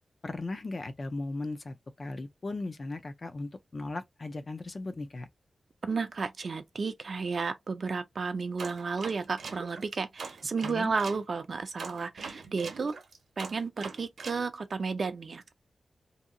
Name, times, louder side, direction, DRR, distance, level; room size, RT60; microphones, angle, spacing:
voice 1, 0.2-5.3 10.6-10.9, left 2 dB, 30° left, 0.4 m, -37 dB
voice 2, 5.8-13.0 13.4-15.5, right 4 dB, 45° right, 0.4 m, -32 dB
sound 1, 8.6-11.2 11.8-14.4, right 5 dB, 85° right, 0.7 m, -42 dB
2.7 x 2.7 x 2.5 m
wide cardioid pair, 175°, 0 cm